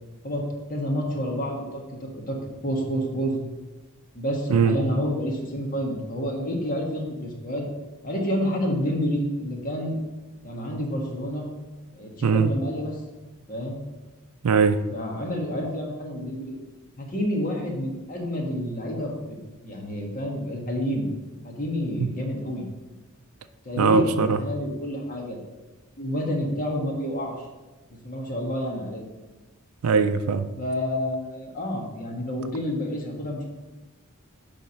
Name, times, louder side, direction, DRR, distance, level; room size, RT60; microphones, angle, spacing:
voice 1, 0.7-2.4 2.6-3.4 4.1-7.6 8.0-10.0 10.4-11.5 11.9-13.0 13.5-13.8 14.9-16.5 17.0-19.4 19.6-21.1 21.4-22.7 23.6-25.4 26.0-27.5 28.0-29.0 30.6-33.5, equal, 40° left, 0 dB, 1.6 m, -29 dB
voice 2, 14.4-14.8 22.0-22.1 23.8-24.4 29.8-30.5, right 5 dB, 85° right, 9 dB, 0.4 m, -20 dB
10.5 x 3.6 x 5.8 m, 1.2 s
head